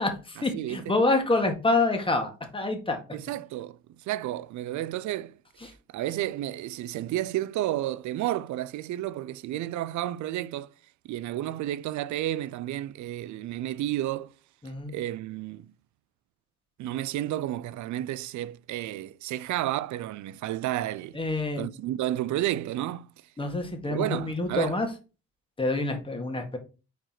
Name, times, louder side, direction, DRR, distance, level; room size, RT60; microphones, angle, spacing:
voice 1, 0.0-3.0 5.6-5.7 14.6-14.9 21.1-21.7 23.4-24.9 25.6-26.6, left 2 dB, 15° left, 1.7 m, -27 dB
voice 2, 0.5-1.0 3.1-10.7 11.0-14.3 14.9-15.7 16.8-21.2 21.6-23.1 23.9-24.8, right 13 dB, 75° right, 0.5 m, -31 dB
4.6 x 4.6 x 5.9 m
cardioid pair, 90°, 30 cm